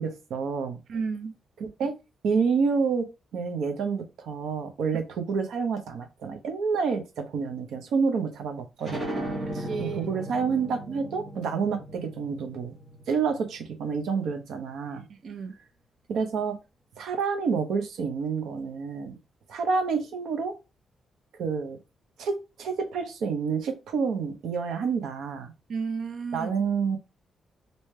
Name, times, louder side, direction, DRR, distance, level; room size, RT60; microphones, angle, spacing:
voice 1, 0.0-0.8 1.6-1.9 2.2-3.1 3.3-12.7 13.1-15.0 16.1-16.6 17.0-19.2 19.5-20.5 21.4-21.8 22.2-22.3 22.6-25.5 26.3-27.0, right 5 dB, 85° right, 0.7 m, -28 dB
voice 2, 0.9-1.3 9.5-10.0 15.2-15.5 25.7-26.5, right 5 dB, 50° right, 0.4 m, -32 dB
sound 1, 8.8-14.1, right 1 dB, 25° right, 0.9 m, -37 dB
3.2 x 2.8 x 3.2 m
wide cardioid pair, 165°, 0 cm